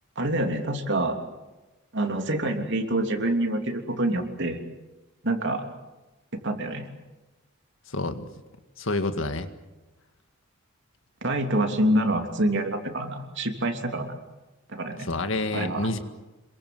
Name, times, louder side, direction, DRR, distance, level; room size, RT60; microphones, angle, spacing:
voice 1, 0.2-1.2 1.9-4.6 5.2-5.6 6.3-6.9 11.2-14.1 14.7-15.1 15.5-15.9, right 1 dB, 60° right, 4 dB, 3.1 m, -26 dB
voice 2, 7.9-8.3 8.8-9.5 15.0-16.0, left 2 dB, 70° left, 8 dB, 1.9 m, -28 dB
27.0 x 23.0 x 7.9 m, 1.1 s
head